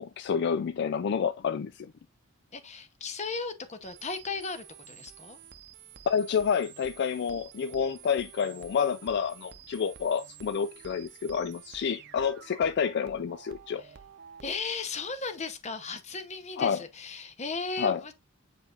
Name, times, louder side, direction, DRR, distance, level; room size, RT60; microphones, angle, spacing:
voice 1, 0.0-1.9 6.1-13.8 16.6-16.8 17.8-18.0, left 7 dB, 55° left, 0.4 m, -29 dB
voice 2, 2.5-5.4 13.7-13.9 14.4-18.1, left 4 dB, 35° left, 0.9 m, -36 dB
sound 1, 3.8-14.6, right 8 dB, 55° right, 0.7 m, -51 dB
7.9 x 5.0 x 2.5 m
head